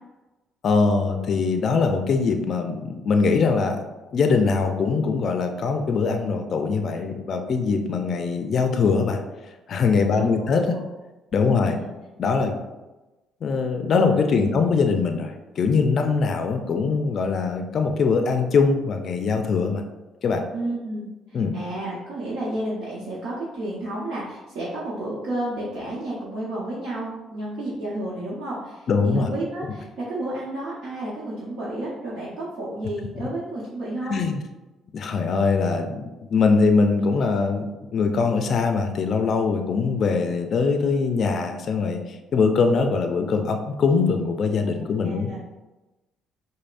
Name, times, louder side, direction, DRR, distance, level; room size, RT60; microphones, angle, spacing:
voice 1, 0.6-3.8 4.1-9.2 9.7-10.8 11.3-11.8 12.2-12.6 13.4-19.9 20.2-20.4 21.3-21.5 28.9-29.3 34.1-34.4 34.9-36.0 36.3-42.0 42.3-45.3, left 4 dB, 55° left, 5 dB, 0.4 m, -22 dB
voice 2, 10.0-10.8 11.4-11.9 14.3-14.5 20.5-34.2 44.7-45.4, right 1 dB, 65° right, -8 dB, 0.9 m, -31 dB
5.1 x 2.1 x 2.5 m, 1.1 s
supercardioid pair, 75°, 0 cm